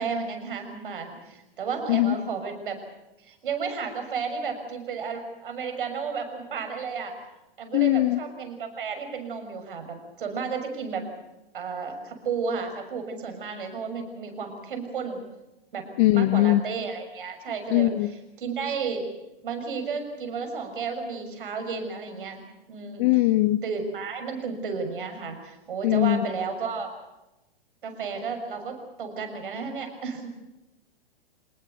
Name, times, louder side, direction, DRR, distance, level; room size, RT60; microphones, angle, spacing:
voice 1, 0.0-2.8 3.2-7.1 7.6-11.1 11.5-15.2 15.7-15.9 16.1-17.9 18.4-19.1 19.4-22.4 22.7-23.0 23.6-26.9 27.8-30.3, right 5 dB, 60° right, 6 dB, 6.6 m, -32 dB
voice 2, 7.7-8.2 16.0-16.6 17.7-18.1 23.0-23.6 25.8-26.3, left 16 dB, 30° left, 19 dB, 0.7 m, -21 dB
27.0 x 20.0 x 6.8 m, 0.97 s
figure-of-eight pair, 110°, 30 cm